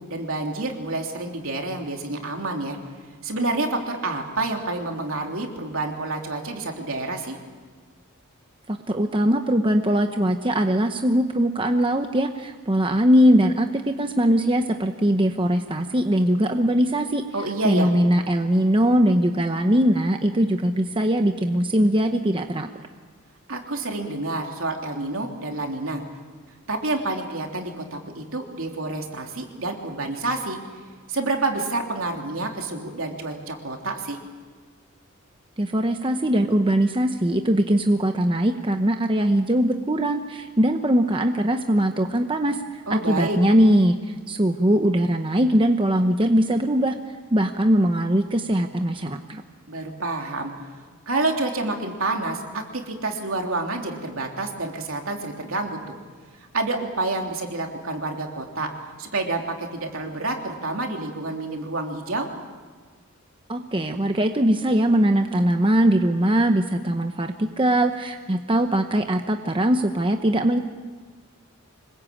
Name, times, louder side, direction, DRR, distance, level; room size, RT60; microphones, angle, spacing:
voice 1, 0.0-2.8 3.2-7.4 17.3-17.9 23.5-26.0 26.7-30.6 31.1-34.2 42.9-43.4 49.7-50.5 51.1-56.0 56.5-58.7 59.0-62.3, right 2 dB, 70° right, 2 dB, 3.3 m, -28 dB
voice 2, 8.7-17.2 17.6-22.8 35.6-49.4 63.5-70.6, equal, 25° right, 6 dB, 0.9 m, -21 dB
26.0 x 21.0 x 8.6 m, 1.5 s
head